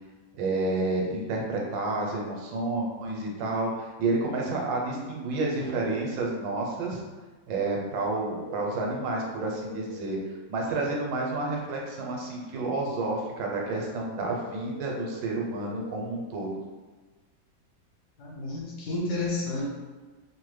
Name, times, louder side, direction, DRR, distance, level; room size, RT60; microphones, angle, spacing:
voice 1, 0.4-7.0 7.5-10.2 10.5-16.5, right 2 dB, 80° right, -1 dB, 1.3 m, -30 dB
sound 1, 8.2-10.2 14.1-16.2, left 2 dB, 5° left, 0.5 m, -43 dB
voice 2, 18.2-19.7, left 2 dB, 70° left, -4 dB, 1.2 m, -31 dB
3.1 x 2.1 x 3.1 m, 1.3 s
omnidirectional pair, 2.0 m